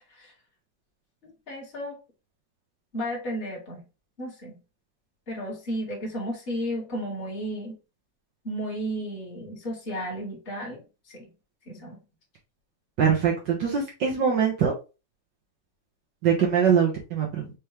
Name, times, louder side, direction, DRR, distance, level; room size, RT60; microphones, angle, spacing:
voice 1, 1.5-2.0 2.9-3.9 4.2-4.6 5.3-7.8 8.4-11.3 11.7-12.0, equal, 25° left, -3 dB, 1.7 m, -33 dB
voice 2, 13.0-14.7 16.2-17.5, right 7 dB, 65° right, -2 dB, 1.1 m, -23 dB
5.2 x 3.0 x 3.3 m, 0.30 s
omnidirectional pair, 3.4 m